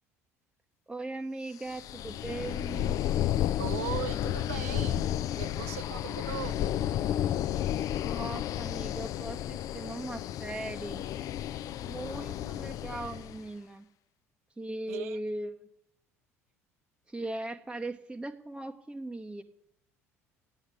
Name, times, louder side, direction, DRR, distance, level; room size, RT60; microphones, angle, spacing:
voice 1, 0.9-3.0 8.0-11.0 11.8-13.9 14.6-15.7 17.1-19.4, right 2 dB, 10° right, 0.8 m, -39 dB
sound 1, 1.6-13.4, left 12 dB, 45° left, 0.4 m, -32 dB
voice 2, 3.6-5.1 5.4-6.7 14.9-15.2, right 11 dB, 75° right, 0.6 m, -38 dB
11.5 x 9.1 x 8.4 m
figure-of-eight pair, 65°, 8 cm